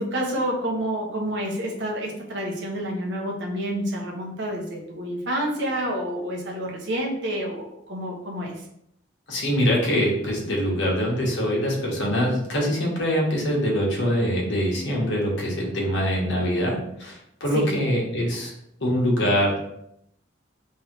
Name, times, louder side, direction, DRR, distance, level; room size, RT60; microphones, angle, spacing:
voice 1, 0.0-8.5 17.5-17.7, right 1 dB, 70° right, -1 dB, 1.2 m, -28 dB
voice 2, 9.3-18.5 18.8-19.6, equal, 75° left, -2 dB, 1.5 m, -24 dB
3.5 x 3.3 x 4.5 m, 0.75 s
head